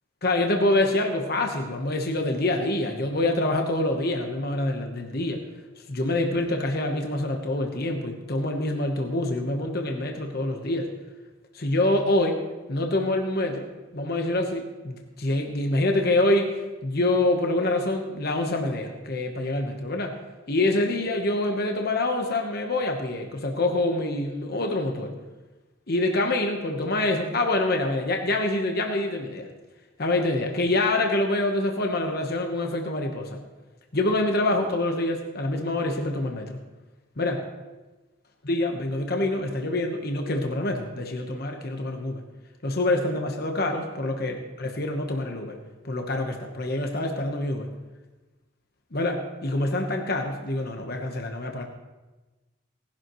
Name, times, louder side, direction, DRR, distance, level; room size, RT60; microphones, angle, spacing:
voice 1, 0.2-5.4 5.9-10.9 11.5-12.4 12.7-13.7 13.9-16.5 16.8-20.1 20.5-25.1 25.9-29.5 30.0-33.4 33.9-36.6 37.2-37.4 38.4-42.2 42.6-45.6 45.8-47.7 48.9-51.6, left 2 dB, 45° left, 3 dB, 1.1 m, -26 dB
18.5 x 11.5 x 3.1 m, 1.2 s
head